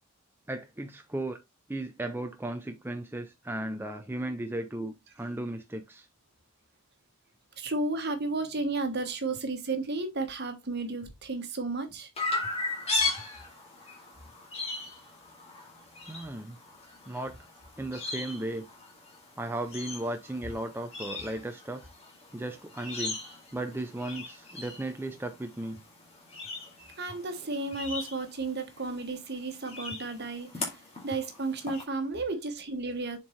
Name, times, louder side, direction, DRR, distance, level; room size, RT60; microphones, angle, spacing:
voice 1, 0.5-1.4 1.7-6.1 16.1-16.6 17.1-17.4 17.8-18.7 19.4-21.9 22.3-23.2 23.5-25.8, right 1 dB, 10° right, 0.5 m, -35 dB
voice 2, 7.6-12.1 27.0-30.8 31.0-33.2, right 3 dB, 50° right, 1.3 m, -33 dB
Chirp tweet, 12.2-31.8, left 3 dB, 30° left, 2.2 m, -38 dB
7.2 x 4.4 x 3.2 m
head